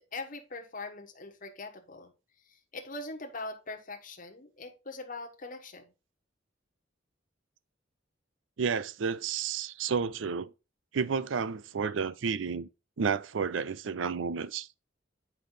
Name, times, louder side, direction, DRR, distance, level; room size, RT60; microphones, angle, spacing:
voice 1, 0.0-2.1 2.5-5.9, left 3 dB, 45° left, 1.3 m, -42 dB
voice 2, 8.6-10.5 10.9-12.7 13.0-14.7, right 6 dB, 85° right, 0.5 m, -31 dB
8.3 x 5.3 x 3.8 m
head